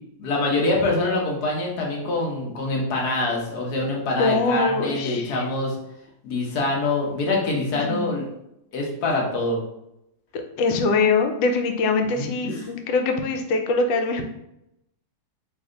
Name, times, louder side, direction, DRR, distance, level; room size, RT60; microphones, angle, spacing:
voice 1, 0.2-5.8 6.2-8.2 8.7-9.6 12.1-12.7, left 2 dB, 65° left, -1 dB, 1.4 m, -25 dB
voice 2, 4.2-5.5 7.7-8.1 10.3-14.2, left 3 dB, 90° left, 5 dB, 1.3 m, -23 dB
3.3 x 2.5 x 3.7 m, 0.81 s
omnidirectional pair, 2.0 m